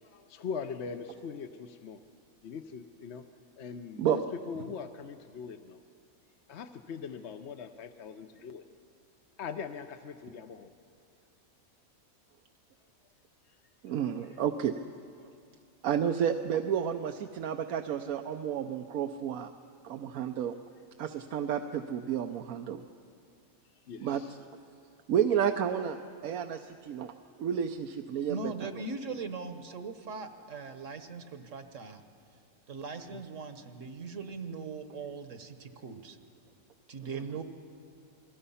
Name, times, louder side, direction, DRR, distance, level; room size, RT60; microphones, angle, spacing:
voice 1, 0.0-2.0 2.4-3.3 3.6-5.8 6.5-8.6 9.4-10.7 23.9-24.4 33.1-33.2, left 6 dB, 55° left, 7 dB, 0.9 m, -41 dB
voice 2, 13.8-14.7 15.8-19.5 19.8-20.5 21.0-22.8 24.0-24.2 25.1-26.0 26.2-27.1 27.4-28.7, right 9 dB, 80° right, 6 dB, 1.1 m, -31 dB
voice 3, 28.3-32.0 32.7-36.2 36.9-37.4, right 4 dB, 65° right, 8 dB, 1.5 m, -40 dB
28.0 x 20.0 x 5.6 m, 2.5 s
omnidirectional pair, 1.5 m